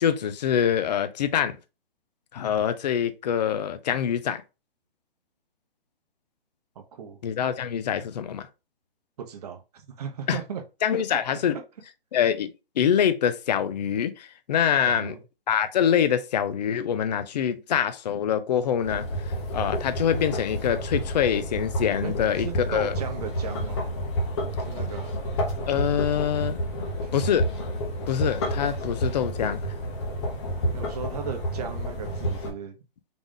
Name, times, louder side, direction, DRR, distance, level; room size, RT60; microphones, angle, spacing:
voice 1, 0.0-1.6 2.3-4.4 7.2-8.5 10.3-10.4 10.8-11.5 12.1-12.5 12.8-15.2 15.5-19.1 19.5-22.9 25.7-26.6 27.1-27.5 28.1-29.6, left 8 dB, 45° left, 0.5 m, -25 dB
voice 2, 6.8-7.2 9.2-10.6 10.9-11.0 14.8-15.2 22.0-23.8 24.6-25.3 27.0-27.1 30.7-32.8, right 7 dB, 40° right, 0.8 m, -37 dB
sound 1, 18.8-32.5, equal, 30° left, 0.8 m, -30 dB
3.9 x 2.4 x 3.6 m
hypercardioid pair, 150°, 30 cm